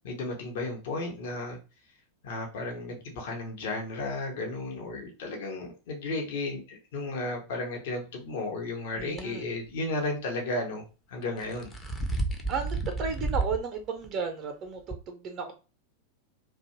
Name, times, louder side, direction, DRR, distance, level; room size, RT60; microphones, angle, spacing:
voice 1, 0.0-1.6 2.2-10.8 11.1-11.7, left 2 dB, 55° left, 1 dB, 0.8 m, -34 dB
sound 1, 9.0-9.2 11.2-13.6 14.0-14.1 14.9-15.0, right 2 dB, 15° left, 0.5 m, -31 dB
voice 2, 9.0-9.5 12.5-15.5, right 5 dB, 35° right, 4 dB, 0.5 m, -34 dB
2.5 x 2.2 x 2.8 m, 0.31 s
figure-of-eight pair, 90°, 0 cm